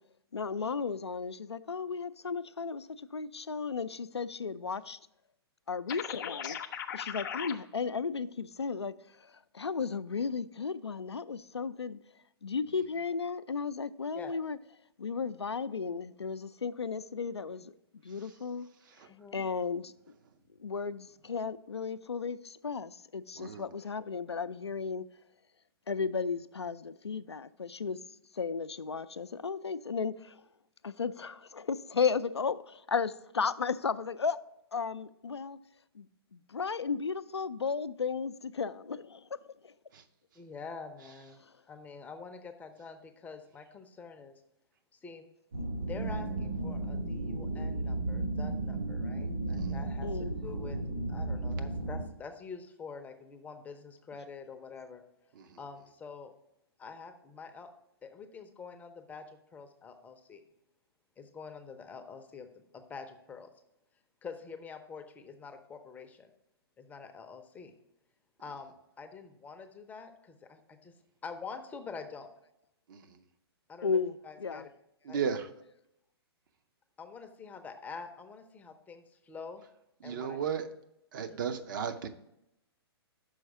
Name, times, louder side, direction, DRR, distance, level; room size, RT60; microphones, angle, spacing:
voice 1, 0.3-5.0 5.7-6.6 6.9-8.9 9.5-12.0 12.4-14.6 15.0-17.7 18.0-18.7 19.3-19.9 20.6-25.0 25.9-28.0 28.4-30.4 30.8-34.4 34.7-35.6 36.0-36.1 36.5-39.2 39.6-39.7 50.0-50.4 73.8-74.7, left 5 dB, 85° left, 0.4 m, -34 dB
sound 1, 5.9-7.5, left 8 dB, 50° left, 0.6 m, -38 dB
voice 2, 19.1-19.4 40.4-41.4 41.7-44.4 45.0-45.3 45.8-50.8 51.1-55.0 55.6-56.3 56.8-57.7 58.0-60.4 61.2-62.5 62.7-63.5 64.2-66.3 66.8-67.7 68.4-70.9 71.2-72.3 73.7-74.7 75.1-75.2 77.0-79.6 80.0-80.4 81.3-81.4, left 5 dB, 10° left, 0.5 m, -46 dB
sound 2, 45.5-52.0, right 2 dB, 75° right, 3.0 m, -34 dB
voice 3, 75.1-75.5 80.0-80.6 81.1-82.1, right 7 dB, 50° right, 0.6 m, -34 dB
6.3 x 4.6 x 5.8 m
figure-of-eight pair, 120°, 14 cm